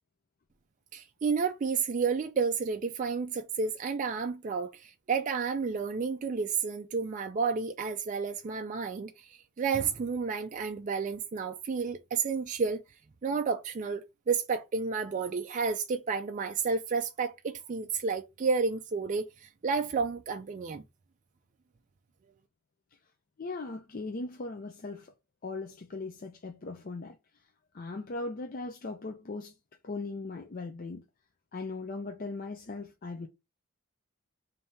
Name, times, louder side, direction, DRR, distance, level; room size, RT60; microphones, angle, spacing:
voice 1, 0.9-12.8 13.2-20.8, right 5 dB, 35° right, 0.3 m, -31 dB
voice 2, 23.4-25.1 25.4-27.2 27.7-29.6 29.8-31.0 31.5-33.3, left 3 dB, 40° left, 0.4 m, -38 dB
3.5 x 2.7 x 4.1 m
head